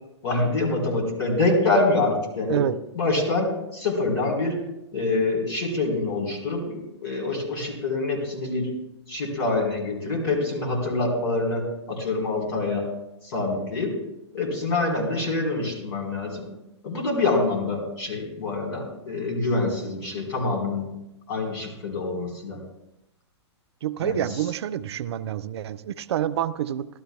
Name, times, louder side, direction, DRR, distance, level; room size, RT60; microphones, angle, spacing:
voice 1, 0.2-2.6 3.0-4.6 4.9-8.7 9.1-12.9 13.2-14.0 14.3-16.5 16.8-20.9 21.3-22.6 24.0-24.2, left 2 dB, 60° left, 0 dB, 4.4 m, -26 dB
voice 2, 23.8-26.9, right 10 dB, 65° right, 14 dB, 0.5 m, -27 dB
17.0 x 12.5 x 2.3 m, 0.89 s
hypercardioid pair, 110°, 15 cm